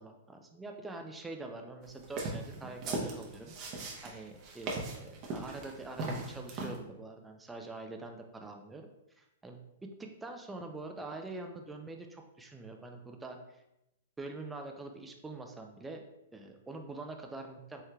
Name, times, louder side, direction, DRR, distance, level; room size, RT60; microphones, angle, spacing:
voice 1, 0.0-8.9 9.2-13.6 14.2-16.0 16.3-17.8, right 2 dB, 10° right, 3 dB, 0.4 m, -45 dB
sound 1, 2.0-6.8, right 3 dB, 35° right, 0.8 m, -38 dB
4.6 x 3.2 x 2.3 m, 0.88 s
hypercardioid pair, 135°, 0 cm